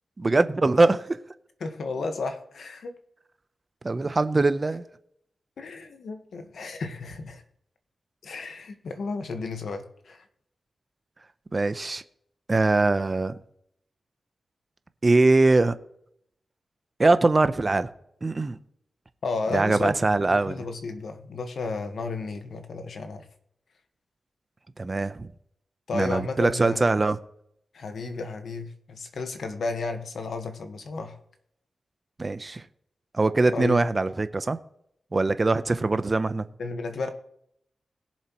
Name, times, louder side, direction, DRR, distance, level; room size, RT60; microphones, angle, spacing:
voice 1, 0.2-1.2 3.8-4.8 11.5-12.0 12.5-13.4 15.0-15.8 17.0-17.9 18.2-18.6 19.5-20.6 24.8-25.3 25.9-27.2 32.2-32.6 33.1-34.6 35.1-36.5, right 3 dB, 30° right, 0.7 m, -22 dB
voice 2, 1.6-3.0 5.6-7.4 8.2-10.2 19.2-20.0 20.3-23.3 25.9-26.9 27.7-31.2 33.5-33.8 36.6-37.1, left 3 dB, 80° left, 1.3 m, -33 dB
20.5 x 7.2 x 3.0 m
wide cardioid pair, 115°, 0 cm